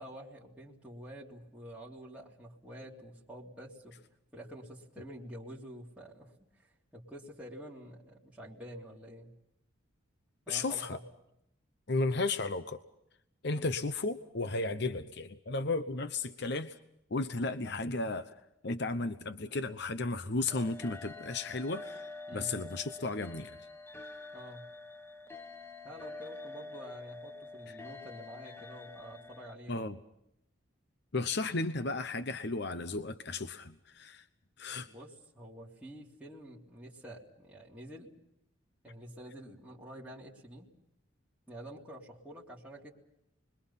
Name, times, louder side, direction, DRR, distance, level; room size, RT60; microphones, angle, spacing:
voice 1, 0.0-4.0 4.3-9.3 10.5-11.0 13.5-13.8 22.3-22.6 24.3-24.7 25.8-29.9 34.9-38.1 38.8-40.7 41.5-42.9, equal, 5° right, -6 dB, 3.4 m, -48 dB
voice 2, 10.5-11.0 11.9-12.8 13.4-16.7 17.1-18.3 18.6-23.6 27.7-27.8 29.7-30.0 31.1-34.2 34.6-34.9, left 3 dB, 55° left, 10 dB, 0.9 m, -34 dB
sound 1, 20.5-29.5, left 3 dB, 10° left, 1.3 m, -47 dB
29.5 x 22.5 x 5.7 m, 0.80 s
head